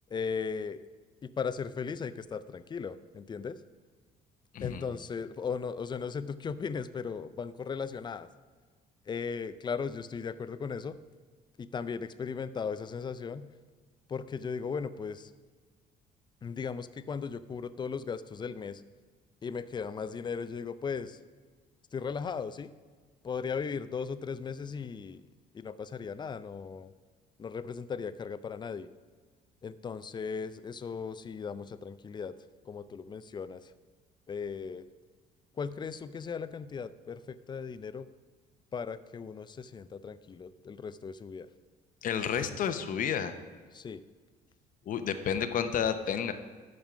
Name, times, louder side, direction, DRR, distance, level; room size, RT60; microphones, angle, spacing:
voice 1, 0.1-0.8 1.2-3.6 4.6-8.3 9.1-11.0 11.6-13.5 14.1-15.3 16.4-18.8 19.4-21.2 21.9-22.7 23.2-25.2 25.5-26.9 27.4-28.9 29.6-32.4 32.7-33.7 34.3-34.9 35.6-38.1 38.7-41.5 43.7-44.0, left 6 dB, 25° left, 14 dB, 0.5 m, -37 dB
voice 2, 42.0-43.4 44.9-46.3, left 8 dB, 55° left, 9 dB, 0.8 m, -31 dB
13.0 x 5.4 x 6.0 m, 1.5 s
cardioid pair, 110°, 17 cm